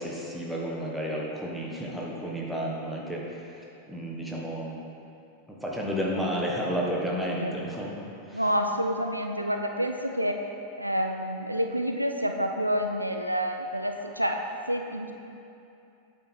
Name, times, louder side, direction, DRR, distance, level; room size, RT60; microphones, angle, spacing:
voice 1, 0.0-4.8 5.5-7.9 8.2-8.4, equal, 5° right, -4 dB, 1.1 m, -32 dB
voice 2, 8.3-10.4 10.8-14.4 14.7-15.1, equal, 85° right, 4 dB, 0.4 m, -28 dB
8.8 x 4.5 x 3.8 m, 2.7 s
figure-of-eight pair, 90°, 0 cm